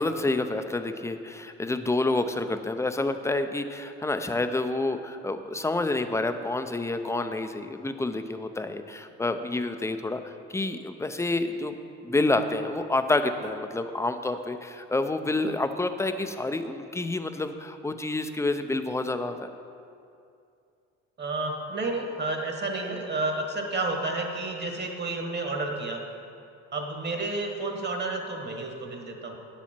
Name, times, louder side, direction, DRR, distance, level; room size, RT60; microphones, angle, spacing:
voice 1, 0.0-11.8 12.0-19.5, left 2 dB, 10° left, 8 dB, 0.5 m, -28 dB
voice 2, 21.2-26.0 26.7-29.4, right 2 dB, 35° right, 3 dB, 1.4 m, -31 dB
9.3 x 7.3 x 4.4 m, 2.5 s
supercardioid pair, 85°, 29 cm